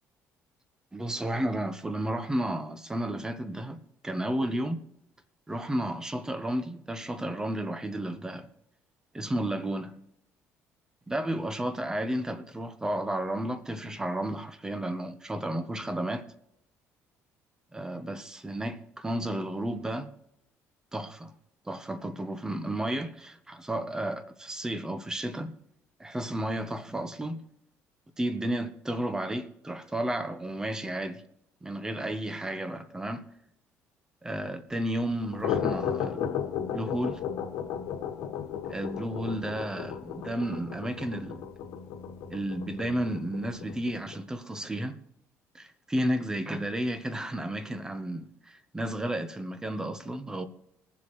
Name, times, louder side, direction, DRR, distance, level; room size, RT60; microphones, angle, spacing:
voice 1, 0.9-4.8 5.5-8.5 9.1-10.0 11.1-16.3 17.7-20.1 20.9-21.3 21.7-25.5 26.0-27.4 28.2-31.2 31.6-33.2 34.2-37.2 38.7-41.4 42.3-45.0 45.5-50.5, right 1 dB, 10° right, 1.0 m, -32 dB
sound 1, 35.1-44.2, left 8 dB, 85° left, 1.6 m, -34 dB
21.0 x 7.5 x 3.2 m
cardioid pair, 120°, 5 cm